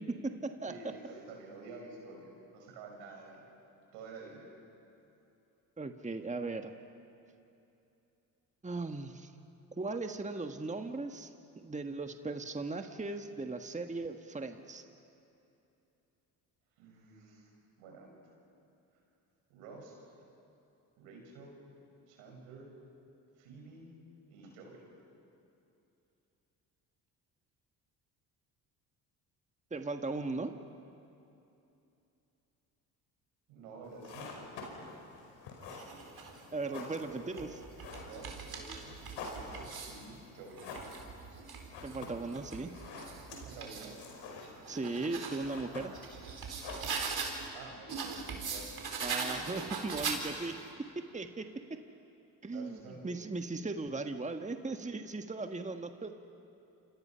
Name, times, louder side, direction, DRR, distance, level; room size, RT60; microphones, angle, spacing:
voice 1, 0.0-0.7 5.8-6.7 8.6-9.3 9.8-11.3 11.6-14.8 29.7-30.5 36.5-37.5 41.8-42.7 44.7-45.9 49.0-50.5 51.1-51.5 52.4-52.8 53.0-56.1, right 3 dB, 15° right, 6 dB, 1.5 m, -37 dB
voice 2, 0.7-3.4 3.9-4.5 16.8-17.5 17.8-18.1 19.5-20.0 21.0-21.6 22.1-22.7 23.4-23.9 24.3-24.8 33.5-34.5 36.5-37.5 38.0-39.0 39.2-40.6 43.4-44.0 47.5-48.7 52.5-53.1, right 3 dB, 85° right, 0 dB, 5.9 m, -50 dB
sound 1, 33.8-47.4, left 3 dB, 70° left, 5.0 m, -48 dB
sound 2, 35.6-36.4 37.1-40.0 40.5-43.9 44.4-47.5 47.9-50.6, right 5 dB, 55° right, 4.4 m, -41 dB
28.5 x 26.5 x 5.7 m, 2.8 s
hypercardioid pair, 55°, 45 cm